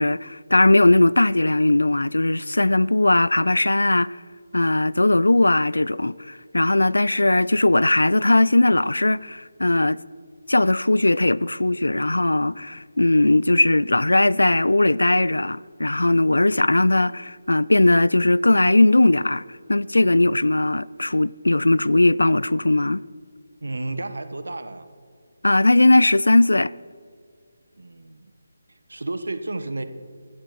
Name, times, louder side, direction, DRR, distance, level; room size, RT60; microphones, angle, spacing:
voice 1, 0.0-4.2 4.5-10.0 10.5-19.4 19.7-23.0 25.4-26.7, left 2 dB, 85° left, 0.3 m, -19 dB
voice 2, 23.6-24.9 27.8-28.3 28.9-29.9, right 2 dB, 75° right, 1.0 m, -31 dB
16.0 x 10.0 x 4.7 m
figure-of-eight pair, 155°, 0 cm